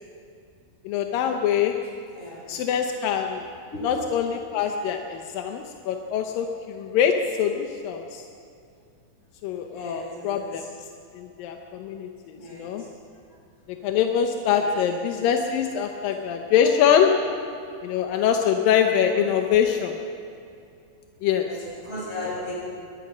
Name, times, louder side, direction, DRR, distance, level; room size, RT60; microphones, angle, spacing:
voice 1, 0.9-1.7 2.5-3.4 3.8-8.3 9.4-10.6 11.1-12.8 13.8-17.1 17.8-20.0 21.2-21.5, left 8 dB, 85° left, 4 dB, 2.7 m, -24 dB
voice 2, 2.1-2.4 3.7-3.8 9.7-10.7 12.3-12.9 14.5-15.3 16.6-17.2 19.1-19.3 21.5-22.5, left 1 dB, 40° left, -5 dB, 8.4 m, -37 dB
22.5 x 20.5 x 6.3 m, 2.6 s
omnidirectional pair, 3.9 m